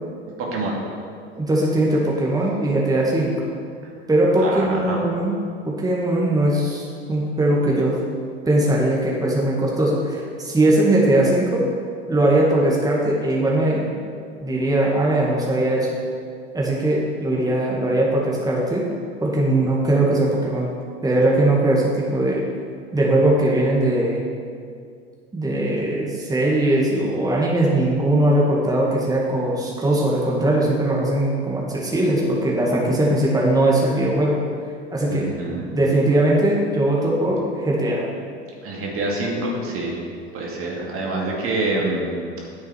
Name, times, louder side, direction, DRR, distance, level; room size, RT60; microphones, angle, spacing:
voice 1, 0.4-0.7 4.4-5.0 35.1-35.7 38.6-40.0 40.3-42.2, right 2 dB, 40° right, -2 dB, 2.2 m, -26 dB
voice 2, 1.4-3.3 4.1-5.3 5.7-7.9 8.5-11.6 12.1-13.9 14.4-15.9 16.5-18.9 19.2-20.7 21.0-22.4 22.9-24.3 25.3-34.4 34.9-35.3 35.7-38.0, right 1 dB, 10° right, -4 dB, 1.9 m, -20 dB
9.5 x 7.9 x 4.6 m, 2.2 s
hypercardioid pair, 80°, 33 cm